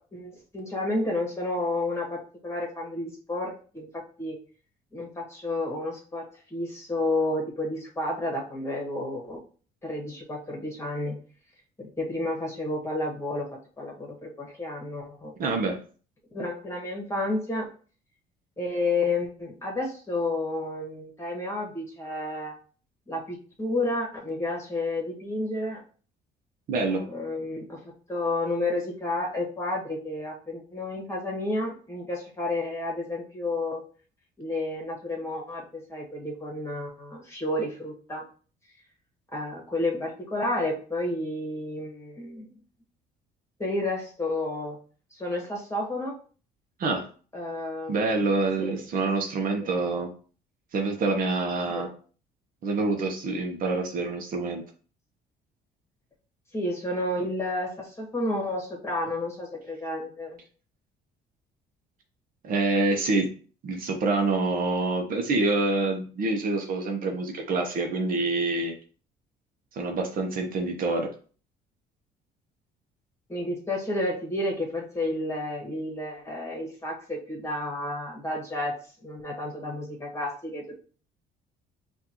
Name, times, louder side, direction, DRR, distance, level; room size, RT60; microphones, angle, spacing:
voice 1, 0.0-4.4 4.9-9.4 9.8-11.2 11.8-13.5 13.8-15.3 16.3-17.7 18.6-22.6 23.1-25.8 26.9-33.8 34.4-38.2 39.3-42.5 43.6-44.8 45.1-46.2 47.3-48.0 48.6-48.9 49.6-49.7 51.7-51.9 56.5-60.4 73.3-78.7 79.0-80.6, left 2 dB, 15° left, -2 dB, 1.8 m, -31 dB
voice 2, 15.4-15.8 26.7-27.0 46.8-47.1 47.9-50.1 50.7-51.9 52.6-54.6 62.4-63.3 63.6-68.8 69.7-71.1, right 3 dB, 55° right, 3 dB, 0.9 m, -26 dB
5.8 x 2.7 x 3.0 m, 0.39 s
cardioid pair, 110°, 17 cm